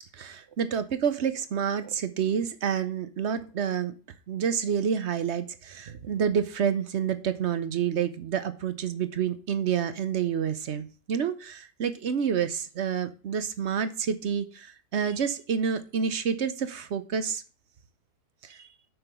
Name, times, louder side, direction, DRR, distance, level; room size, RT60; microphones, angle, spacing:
voice 1, 0.1-3.9 4.3-17.4 18.4-18.7, right 7 dB, 55° right, 12 dB, 0.8 m, -28 dB
6.8 x 5.8 x 6.7 m, 0.36 s
omnidirectional pair, 1.7 m